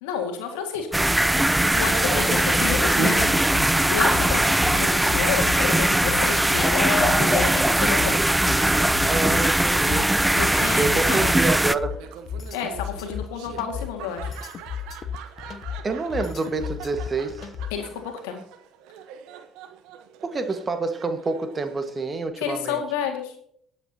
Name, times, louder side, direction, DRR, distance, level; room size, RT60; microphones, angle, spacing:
voice 1, 0.0-0.9 1.7-3.3 3.9-8.2 10.4-11.2 12.5-14.3 17.7-18.4 22.4-23.3, left 7 dB, 80° left, 3 dB, 1.9 m, -30 dB
sound 1, 0.9-11.8, right 1 dB, 10° right, 0.5 m, -20 dB
voice 2, 2.0-2.3 2.7-3.1 9.1-10.1 10.8-12.0 15.8-17.5 20.2-22.8, right 3 dB, 35° right, 8 dB, 1.5 m, -27 dB
sound 2, 2.7-17.9, left 8 dB, 55° left, 0.8 m, -34 dB
Laughter, 11.9-22.3, right 8 dB, 75° right, 1.1 m, -44 dB
21.5 x 8.0 x 2.8 m, 0.66 s
hypercardioid pair, 55°, 0 cm